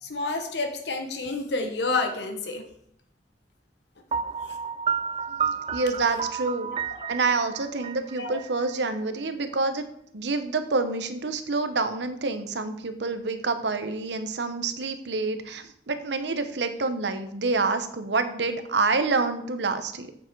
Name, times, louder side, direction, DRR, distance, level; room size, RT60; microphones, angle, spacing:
voice 1, 0.0-2.6 4.4-4.6 6.7-6.8 8.2-8.4, left 3 dB, 75° left, 4 dB, 1.2 m, -29 dB
Piano, 4.1-9.0, right 6 dB, 30° right, 0.3 m, -31 dB
voice 2, 5.3-6.7 7.1-9.9 10.1-20.1, right 3 dB, 80° right, 9 dB, 0.9 m, -27 dB
8.4 x 7.0 x 4.6 m, 0.70 s
head